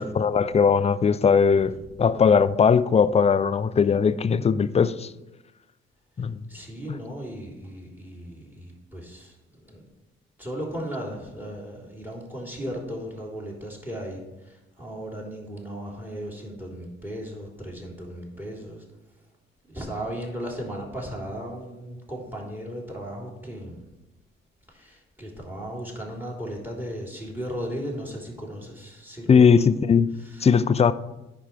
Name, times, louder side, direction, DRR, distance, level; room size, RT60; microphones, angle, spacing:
voice 1, 0.0-1.7 2.0-5.1 6.2-6.4 29.3-30.1 30.4-30.9, left 6 dB, 20° left, 0.5 m, -19 dB
voice 2, 6.2-9.8 10.4-18.8 19.1-19.2 19.7-23.9 24.7-29.6 30.2-30.6, equal, 5° right, 3.4 m, -36 dB
10.0 x 4.8 x 5.8 m
figure-of-eight pair, 40°, 30 cm